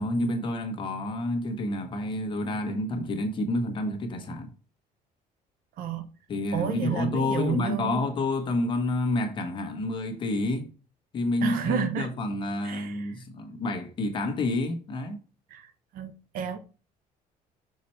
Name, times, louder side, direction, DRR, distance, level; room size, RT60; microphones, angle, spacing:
voice 1, 0.0-4.5 6.3-10.7 11.1-15.2, left 2 dB, 35° left, 1.3 m, -29 dB
voice 2, 6.5-8.0 11.4-12.1 12.6-13.1 15.5-16.6, right 7 dB, 75° right, 1.0 m, -31 dB
6.2 x 4.2 x 4.5 m
cardioid pair, 155°, 15 cm